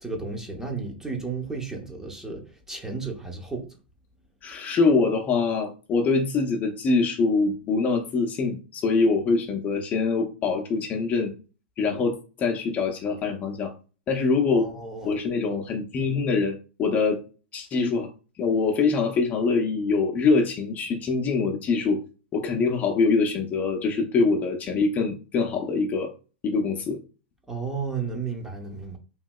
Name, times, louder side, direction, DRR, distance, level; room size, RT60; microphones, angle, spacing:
voice 1, 0.0-3.7 14.5-15.1 27.5-29.0, right 4 dB, 10° right, 0.7 m, -33 dB
voice 2, 4.4-11.3 11.8-13.7 14.1-14.7 15.0-17.2 17.5-18.1 18.4-22.0 22.3-26.1 26.4-27.0, left 4 dB, 30° left, 0.6 m, -24 dB
3.0 x 2.6 x 2.2 m
hypercardioid pair, 105°, 6 cm